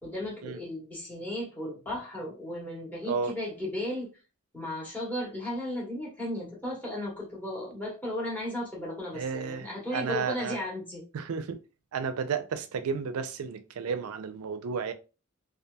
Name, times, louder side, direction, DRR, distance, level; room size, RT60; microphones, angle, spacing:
voice 1, 0.0-4.1 4.5-11.0, left 1 dB, 10° left, 1.1 m, -35 dB
voice 2, 9.1-9.7 9.9-10.6 11.1-11.6 11.9-14.9, right 6 dB, 85° right, 0.4 m, -32 dB
2.7 x 2.3 x 2.2 m
head